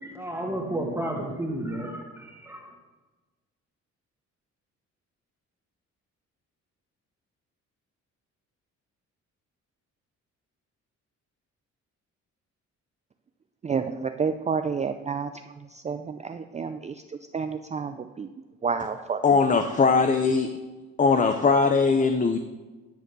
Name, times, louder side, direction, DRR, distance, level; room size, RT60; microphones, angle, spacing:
voice 1, 0.0-2.7, right 1 dB, 10° right, 0 dB, 1.7 m, -32 dB
voice 2, 13.6-15.3 15.7-17.0 17.3-18.3 18.6-19.2, right 5 dB, 25° right, 8 dB, 0.4 m, -29 dB
voice 3, 19.2-20.5 21.0-22.4, left 4 dB, 25° left, 7 dB, 0.6 m, -20 dB
11.0 x 4.2 x 6.7 m, 1.2 s
cardioid pair, 90°, 30 cm